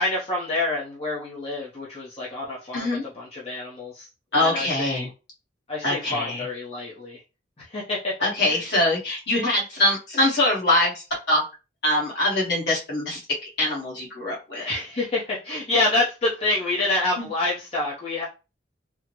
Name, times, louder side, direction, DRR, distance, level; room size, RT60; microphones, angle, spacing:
voice 1, 0.0-4.1 4.4-5.1 5.7-7.2 7.6-8.6 14.6-18.2, left 2 dB, 30° left, -6 dB, 0.8 m, -27 dB
voice 2, 2.7-3.0 4.3-5.1 5.8-6.4 8.2-11.4 11.8-14.6 17.2-17.3, left 1 dB, 60° left, -4 dB, 1.4 m, -23 dB
3.6 x 2.1 x 3.0 m, 0.30 s
head